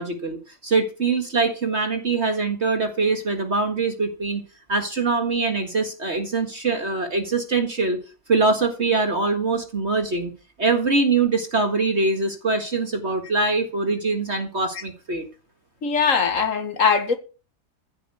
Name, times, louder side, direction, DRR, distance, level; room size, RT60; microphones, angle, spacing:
voice 1, 0.0-4.4 4.7-8.0 8.3-10.3 10.6-15.3, right 3 dB, 40° right, 2.0 m, -23 dB
voice 2, 15.8-17.2, left 5 dB, 50° left, 2.0 m, -21 dB
15.5 x 5.4 x 8.3 m
omnidirectional pair, 1.8 m